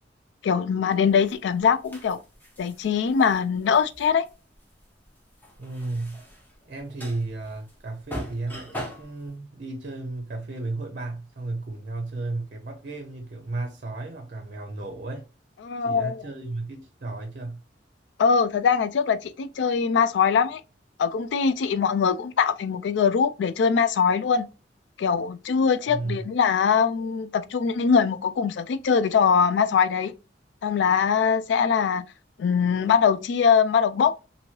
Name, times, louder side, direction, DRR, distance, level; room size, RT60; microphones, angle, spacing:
voice 1, 0.4-2.2 2.6-4.3 15.6-16.2 18.2-20.6 21.0-24.5 25.0-30.1 30.6-32.0 32.4-34.3, left 6 dB, 70° left, 0.3 m, -22 dB
sound 1, 1.1-9.3, equal, 10° left, 0.7 m, -41 dB
voice 2, 5.6-6.2 6.7-15.3 15.8-17.6 25.9-26.3, right 2 dB, 50° right, 0.6 m, -34 dB
2.9 x 2.6 x 2.8 m
head